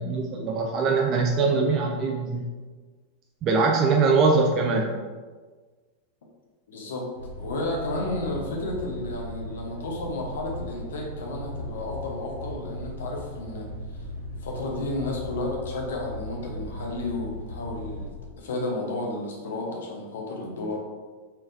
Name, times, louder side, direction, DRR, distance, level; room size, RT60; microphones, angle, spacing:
voice 1, 0.0-2.5 3.4-4.9, right 4 dB, 35° right, 1 dB, 0.4 m, -22 dB
voice 2, 6.7-7.1 7.4-14.1 14.4-18.1 18.4-20.8, left 2 dB, 60° left, 0 dB, 0.9 m, -32 dB
sound 1, 7.1-18.1, equal, 85° left, 1.0 m, -37 dB
4.4 x 3.6 x 2.7 m, 1.4 s
figure-of-eight pair, 90°, 0 cm